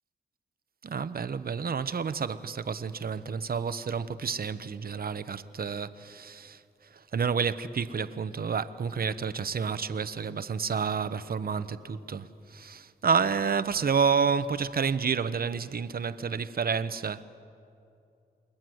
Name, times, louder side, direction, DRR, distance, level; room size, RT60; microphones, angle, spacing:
voice 1, 0.8-6.6 7.1-17.2, right 6 dB, 55° right, 1.0 m, -29 dB
29.5 x 21.5 x 7.9 m
cardioid pair, 65°, 18 cm